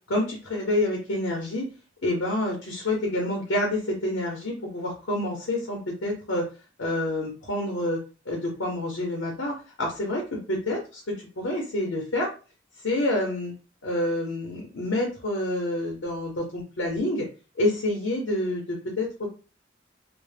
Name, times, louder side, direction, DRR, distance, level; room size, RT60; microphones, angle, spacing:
voice 1, 0.1-1.7 2.0-6.5 6.8-12.3 12.8-13.5 13.8-17.3 17.6-19.3, left 1 dB, 75° left, 0 dB, 0.6 m, -28 dB
2.0 x 2.0 x 3.2 m, 0.34 s
head